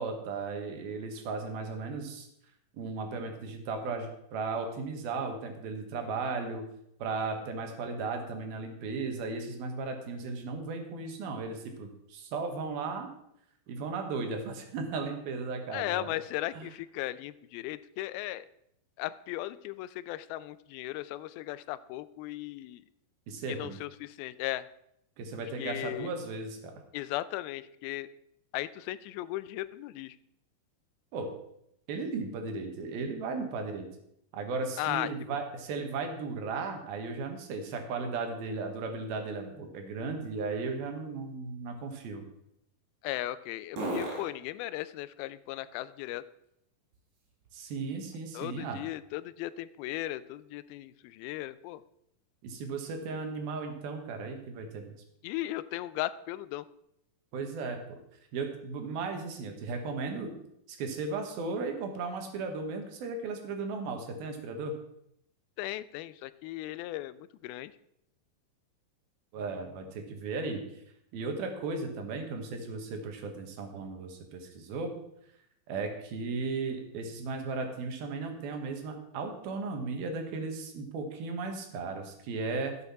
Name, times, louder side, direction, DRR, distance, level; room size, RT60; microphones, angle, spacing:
voice 1, 0.0-2.3 2.7-6.6 7.0-13.1 13.7-16.1 16.5-16.7 23.3-23.8 25.2-26.8 31.1-31.3 31.9-33.9 34.3-42.2 47.5-48.8 52.4-54.9 57.3-57.8 58.3-60.3 60.7-64.7 69.3-70.6 71.1-74.9 75.7-82.8, right 4 dB, 80° right, 4 dB, 3.3 m, -36 dB
voice 2, 15.7-18.5 19.0-22.8 23.5-24.7 25.6-26.1 26.9-28.1 28.5-30.2 34.8-35.4 43.0-46.2 48.3-51.8 55.2-56.7 65.6-67.7, left 16 dB, 85° left, 15 dB, 2.4 m, -37 dB
sound 1, 38.8-47.8 48.3-52.1, right 1 dB, 55° right, 4.9 m, -46 dB
12.0 x 8.0 x 5.8 m, 0.76 s
omnidirectional pair, 4.3 m